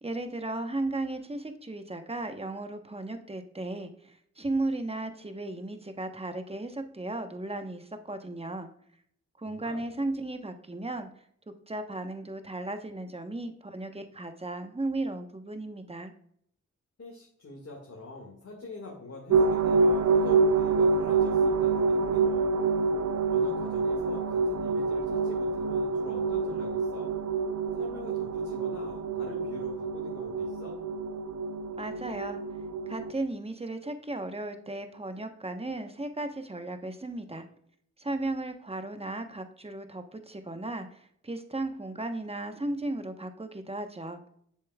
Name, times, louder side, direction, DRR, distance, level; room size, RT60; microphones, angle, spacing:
voice 1, 0.0-8.7 9.4-11.1 11.5-16.1 31.8-32.4 32.9-37.4 38.0-44.2, right 2 dB, 20° right, 7 dB, 1.0 m, -35 dB
voice 2, 9.5-9.9 17.0-22.5 23.3-27.1 27.7-30.8, left 3 dB, 55° left, -2 dB, 1.9 m, -44 dB
sound 1, 19.3-33.1, right 4 dB, 70° right, 0.5 m, -27 dB
7.5 x 7.0 x 2.3 m, 0.68 s
cardioid pair, 40°, 30 cm